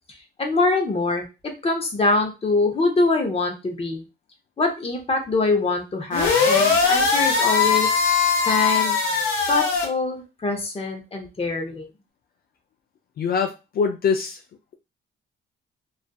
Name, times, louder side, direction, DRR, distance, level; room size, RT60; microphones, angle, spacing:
voice 1, 0.4-4.0 4.6-8.0 8.5-9.0 9.5-11.9, left 3 dB, 30° left, 3 dB, 0.8 m, -24 dB
sound 1, 6.1-9.9, left 5 dB, 70° left, 0.9 m, -20 dB
voice 2, 13.2-14.4, left 6 dB, 50° left, 5 dB, 0.4 m, -23 dB
2.4 x 2.4 x 2.3 m, 0.27 s
cardioid pair, 90°, 20 cm